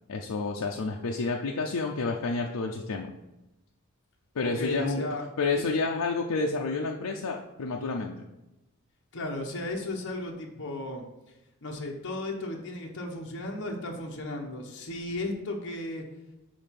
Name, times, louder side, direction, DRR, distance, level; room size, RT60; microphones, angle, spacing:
voice 1, 0.1-3.1 4.3-5.1 5.4-8.3, left 3 dB, 85° left, 0 dB, 0.6 m, -29 dB
voice 2, 4.4-5.3 5.5-5.6 9.1-11.0 11.6-16.0, left 2 dB, 55° left, 0 dB, 1.0 m, -35 dB
5.2 x 4.6 x 5.8 m, 0.99 s
head